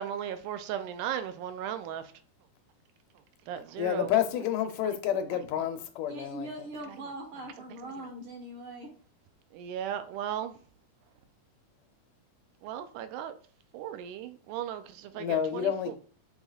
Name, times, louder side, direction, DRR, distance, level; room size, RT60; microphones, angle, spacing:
voice 1, 0.0-2.1 3.5-4.1 4.8-5.0 5.3-5.4 6.9-7.1 7.7-8.1 9.5-10.6 12.6-13.4 13.7-15.9, right 10 dB, 80° right, 2.2 m, -37 dB
voice 2, 3.8-6.5 15.1-16.0, left 9 dB, 80° left, 2.3 m, -29 dB
voice 3, 6.1-8.9, right 1 dB, 55° right, 1.7 m, -41 dB
6.3 x 6.3 x 2.4 m
omnidirectional pair, 3.7 m